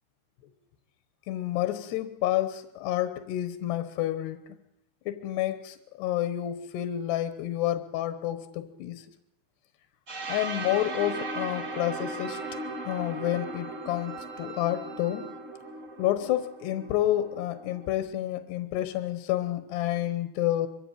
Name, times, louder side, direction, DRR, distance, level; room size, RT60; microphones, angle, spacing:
voice 1, 1.3-4.4 5.1-9.1 10.3-12.4 12.9-15.3 16.0-20.7, left 13 dB, 75° left, 11 dB, 3.1 m, -29 dB
sound 1, 10.1-17.9, right 2 dB, 50° right, 0.9 m, -38 dB
Wind instrument woodwind instrument, 12.2-15.4, right 8 dB, 80° right, 0.4 m, -48 dB
24.0 x 16.0 x 9.1 m, 0.80 s
omnidirectional pair, 5.1 m